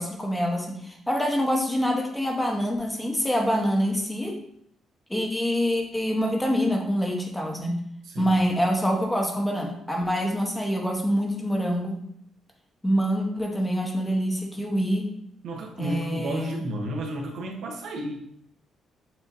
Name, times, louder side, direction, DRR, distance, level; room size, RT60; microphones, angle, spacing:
voice 1, 0.0-4.4 5.1-7.8 8.2-12.0 12.8-15.1 15.8-16.6, equal, 10° left, 1 dB, 0.9 m, -25 dB
voice 2, 8.0-8.4 15.4-18.3, right 1 dB, 75° right, 1 dB, 0.9 m, -32 dB
7.3 x 2.7 x 2.6 m, 0.71 s
cardioid pair, 90°, 0 cm